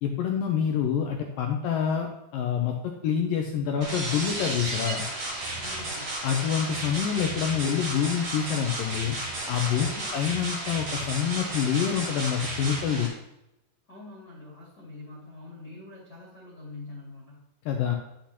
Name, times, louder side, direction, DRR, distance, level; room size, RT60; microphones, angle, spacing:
voice 1, 0.0-5.0 6.2-9.2 9.5-13.1 17.7-18.0, left 8 dB, 85° left, 2 dB, 2.0 m, -27 dB
sound 1, 3.8-13.1, right 1 dB, 45° right, 3.3 m, -33 dB
voice 2, 5.6-6.2 9.9-10.2 13.9-17.5, left 2 dB, 30° left, -6 dB, 2.3 m, -45 dB
10.5 x 8.1 x 2.9 m, 0.86 s
omnidirectional pair, 4.8 m